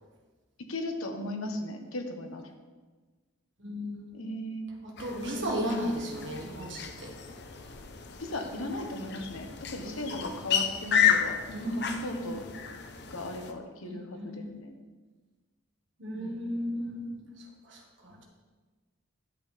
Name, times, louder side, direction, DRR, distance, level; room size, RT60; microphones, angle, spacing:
voice 1, 0.7-2.4 4.1-4.7 5.3-5.5 8.2-11.6 12.0-12.4 13.1-14.7, left 1 dB, 90° left, 4 dB, 1.2 m, -37 dB
voice 2, 3.6-4.3 4.8-7.2 9.8-10.2 11.5-12.3 13.9-14.5 16.0-18.2, equal, 60° right, 1 dB, 1.6 m, -35 dB
sound 1, 5.0-13.5, left 8 dB, 50° left, 0.6 m, -32 dB
11.0 x 7.8 x 3.4 m, 1.3 s
head